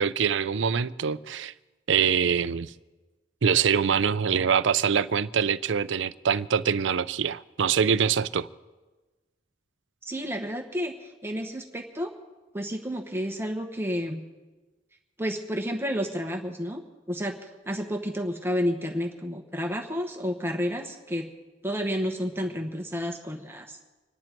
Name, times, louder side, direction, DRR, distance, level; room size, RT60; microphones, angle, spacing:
voice 1, 0.0-1.5 1.9-2.7 3.4-8.5, right 7 dB, 75° right, 0.5 m, -24 dB
voice 2, 10.0-12.1 12.5-14.2 15.2-16.8 17.1-21.2 21.6-23.8, equal, 15° right, 1.2 m, -31 dB
26.5 x 10.5 x 4.5 m
head